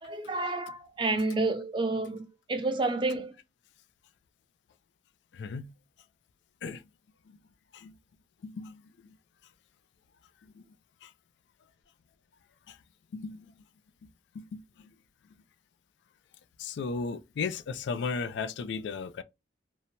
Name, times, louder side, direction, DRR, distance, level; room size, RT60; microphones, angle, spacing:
voice 1, 0.0-3.4, right 2 dB, 30° right, 0.5 m, -30 dB
voice 2, 5.3-5.7 6.6-6.8 7.7-7.9 8.4-9.1 10.6-10.7 11.0-11.1 12.7-12.8 13.1-13.5 14.3-14.6 16.6-19.2, left 5 dB, 85° left, 0.3 m, -35 dB
2.7 x 2.1 x 2.7 m
head